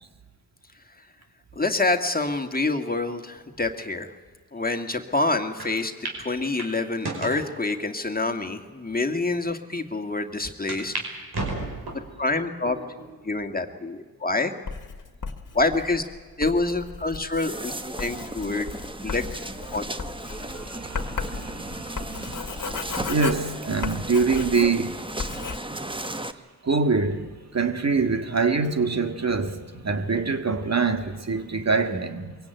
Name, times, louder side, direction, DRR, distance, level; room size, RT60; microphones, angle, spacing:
voice 1, 1.5-4.1 4.5-5.9 6.2-10.9 12.2-12.8 13.2-14.5 15.5-16.0 16.4-18.7 19.0-19.2 19.7-19.8, left 2 dB, 20° left, 2.0 m, -26 dB
sound 1, 5.6-5.7 6.0-6.2 6.6-7.5 8.1-8.2 8.9-9.0 9.3-9.4 10.7-11.1 11.3-12.1 12.7-13.1 13.6-13.7 14.9-15.3, right 2 dB, 70° right, 5.4 m, -33 dB
Writing, 14.7-24.9 25.2-25.6, left 5 dB, 50° left, 2.0 m, -35 dB
sound 2, 17.4-26.3, right 1 dB, 15° right, 1.3 m, -36 dB
voice 2, 20.3-25.3 26.6-32.4, right 4 dB, 40° right, 2.0 m, -25 dB
22.0 x 17.0 x 9.2 m
supercardioid pair, 45°, 39 cm